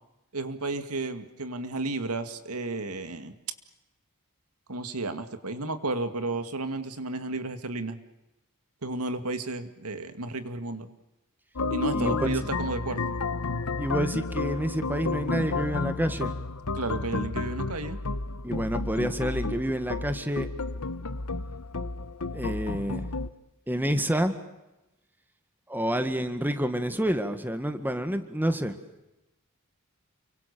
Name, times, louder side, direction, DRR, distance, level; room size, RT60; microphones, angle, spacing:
voice 1, 0.3-3.3 4.7-8.0 8.8-10.9 11.7-13.2 16.7-18.0, right 2 dB, 80° right, 9 dB, 2.2 m, -32 dB
sound 1, 11.6-23.3, left 3 dB, 75° left, 1.2 m, -31 dB
voice 2, 13.8-16.3 18.4-20.5 22.3-23.1 23.7-24.3 25.7-28.8, equal, 10° right, 9 dB, 1.8 m, -28 dB
29.5 x 24.5 x 6.9 m, 0.95 s
head